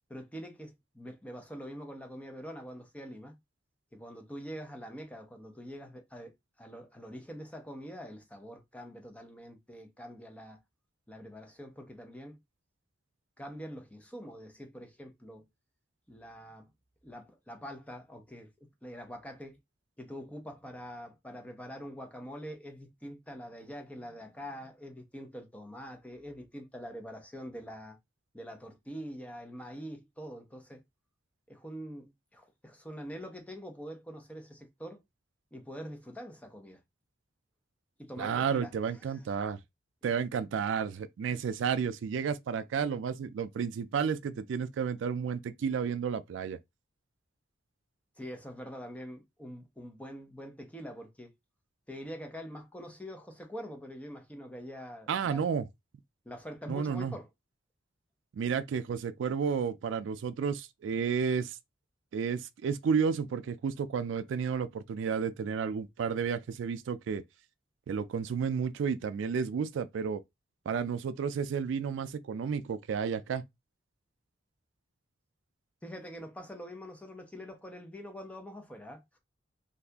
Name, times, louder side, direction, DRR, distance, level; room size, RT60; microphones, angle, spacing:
voice 1, 0.1-3.4 3.9-6.3 6.6-10.6 11.1-12.4 13.4-15.4 16.1-16.7 17.0-18.5 18.8-19.6 20.0-28.0 28.3-30.8 31.5-35.0 35.5-36.8 38.0-39.2 48.2-51.3 51.9-55.4 56.2-57.3 75.8-79.2, equal, 5° left, 0.6 m, -44 dB
voice 2, 38.2-39.6 40.0-46.6 55.1-55.7 56.7-57.1 58.3-61.6 62.1-67.2 67.9-70.2 70.7-73.4, right 6 dB, 70° right, 0.3 m, -32 dB
2.7 x 2.4 x 3.4 m
head